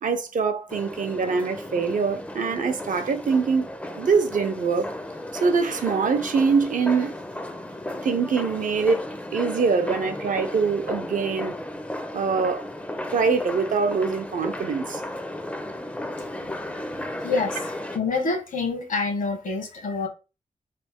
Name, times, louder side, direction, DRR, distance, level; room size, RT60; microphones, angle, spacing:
voice 1, 0.0-3.7 4.0-4.9 5.3-7.1 8.0-9.0 9.3-11.5 12.1-12.7 13.1-15.0, right 5 dB, 70° right, 0.6 m, -24 dB
sound 1, 0.7-18.0, left 1 dB, 10° left, 0.4 m, -34 dB
voice 2, 17.2-20.1, left 3 dB, 70° left, 1.1 m, -27 dB
3.1 x 2.5 x 3.5 m
wide cardioid pair, 110°, 14 cm